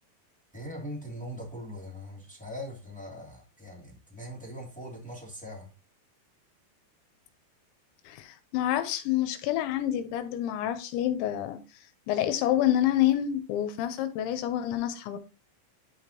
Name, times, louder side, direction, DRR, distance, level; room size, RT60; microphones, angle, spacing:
voice 1, 0.5-5.7, equal, 5° left, 1.0 m, -41 dB
voice 2, 8.1-11.6 12.1-15.2, left 12 dB, 80° left, 3.0 m, -28 dB
11.0 x 5.0 x 2.9 m
omnidirectional pair, 5.4 m